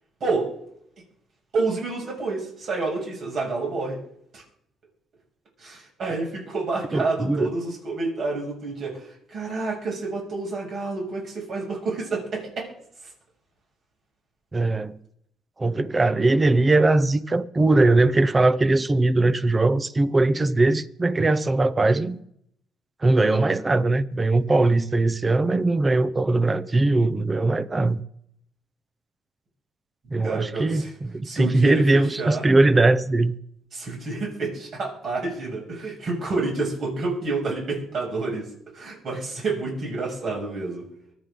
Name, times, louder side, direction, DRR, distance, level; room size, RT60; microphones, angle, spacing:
voice 1, 1.5-4.0 4.3-4.4 5.6-12.7 30.2-30.9 31.2-32.4 33.7-40.8, right 3 dB, 50° right, 7.2 m, -29 dB
voice 2, 6.9-7.5 14.5-14.9 15.6-22.2 23.0-28.0 30.1-33.4, right 2 dB, 20° right, 0.8 m, -20 dB
24.0 x 9.4 x 3.9 m
cardioid pair, 110°, 0 cm